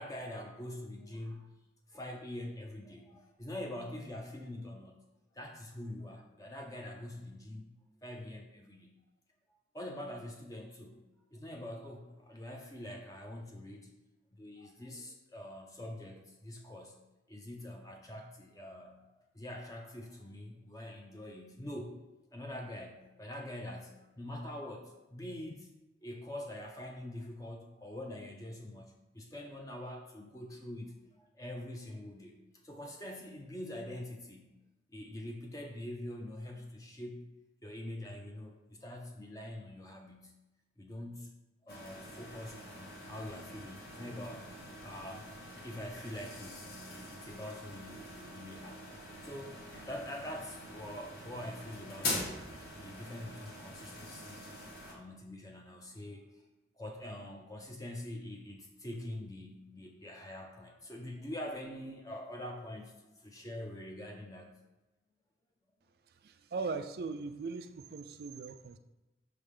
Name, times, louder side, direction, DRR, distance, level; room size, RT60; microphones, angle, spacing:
voice 1, 0.0-1.5 1.9-5.0 5.3-7.7 8.0-8.9 9.7-11.0 11.3-13.9 14.3-17.0 17.3-22.0 22.3-25.7 26.0-34.6 34.9-37.2 37.6-40.3 40.8-41.4 41.6-44.5 44.8-48.8 49.2-54.5 54.9-56.3 56.8-64.6, left 1 dB, 20° left, 2 dB, 0.5 m, -44 dB
sound 1, 41.7-54.9, left 1 dB, 55° left, 1.1 m, -44 dB
voice 2, 66.2-68.8, right 4 dB, 55° right, 10 dB, 0.3 m, -39 dB
5.6 x 3.4 x 5.3 m, 1.0 s
head